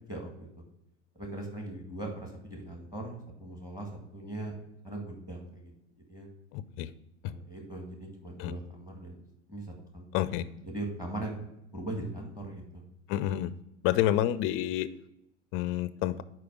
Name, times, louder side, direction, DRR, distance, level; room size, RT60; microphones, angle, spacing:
voice 1, 0.1-0.5 1.1-4.5 4.8-5.7 6.1-6.3 7.3-9.2 9.5-9.6 9.9-10.1 10.6-11.4 11.7-12.8, right 1 dB, 10° right, 2 dB, 1.6 m, -39 dB
voice 2, 6.5-6.9 7.2-7.3 8.4-8.5 10.1-10.5 13.1-13.5 13.8-14.9 15.5-16.2, left 13 dB, 40° left, 16 dB, 0.4 m, -29 dB
5.0 x 4.6 x 5.9 m, 0.83 s
hypercardioid pair, 110°, 36 cm